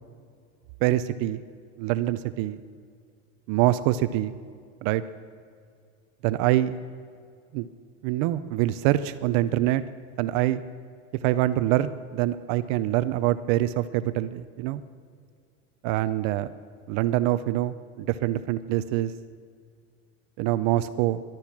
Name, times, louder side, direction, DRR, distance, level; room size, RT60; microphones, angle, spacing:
voice 1, 0.8-1.4 1.8-2.6 3.5-4.3 4.8-5.0 6.2-6.8 7.5-7.7 8.0-9.8 10.2-10.6 11.2-14.8 15.8-16.5 16.9-19.1 20.4-21.2, right 14 dB, 55° right, 13 dB, 0.6 m, -25 dB
18.5 x 12.5 x 6.0 m, 2.2 s
cardioid pair, 160°, 34 cm